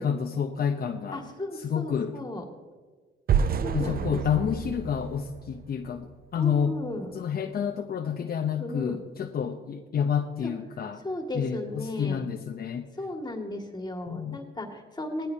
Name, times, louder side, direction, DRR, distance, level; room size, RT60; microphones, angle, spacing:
voice 1, 0.0-1.2 1.6-2.2 3.7-6.8 7.1-11.0 11.3-12.9 14.1-14.4, left 7 dB, 50° left, 5 dB, 0.8 m, -29 dB
voice 2, 1.1-2.4 3.6-4.2 6.4-7.1 8.6-9.0 10.4-10.5 11.0-12.2 13.0-15.3, left 1 dB, 20° left, 3 dB, 2.2 m, -35 dB
sound 1, 3.3-6.3, right 7 dB, 50° right, 0.6 m, -29 dB
18.5 x 14.5 x 2.9 m, 1.5 s
cardioid pair, 90°, 20 cm